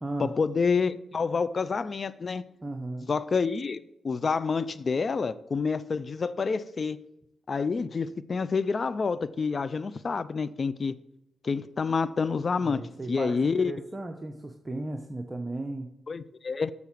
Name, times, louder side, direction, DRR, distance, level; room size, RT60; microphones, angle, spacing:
voice 1, 0.2-2.4 3.1-3.8 4.0-7.1 7.5-11.0 11.4-12.8 13.1-13.7 16.1-16.7, left 5 dB, 50° left, 0.5 m, -28 dB
voice 2, 2.6-3.1 12.6-15.9, right 2 dB, 25° right, 0.9 m, -35 dB
6.9 x 6.8 x 4.6 m
supercardioid pair, 45°, 0 cm